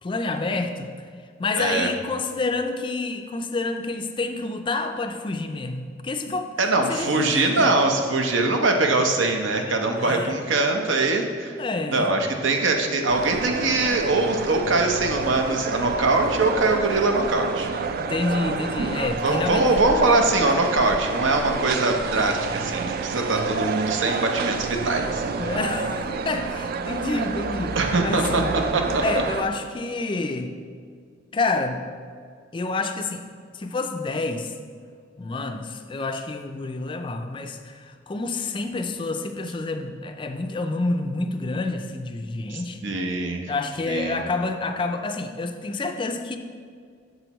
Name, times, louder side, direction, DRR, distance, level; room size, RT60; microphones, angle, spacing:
voice 1, 0.0-0.9 1.4-6.5 6.9-7.7 9.5-10.3 11.6-12.1 18.0-19.7 25.4-27.8 28.0-28.5 29.0-30.5 31.3-31.8 32.5-33.2 33.5-34.5 35.2-42.8 43.5-46.4, left 3 dB, 25° left, 6 dB, 0.4 m, -28 dB
voice 2, 1.6-1.9 6.6-11.5 11.9-17.7 19.2-25.2 27.8-28.4 28.7-29.0 42.5-43.5 43.9-44.2, right 2 dB, 80° right, 3 dB, 0.8 m, -22 dB
sound 1, 13.1-29.4, right 4 dB, 50° right, 0.3 m, -29 dB
7.8 x 6.9 x 3.0 m, 2.1 s
head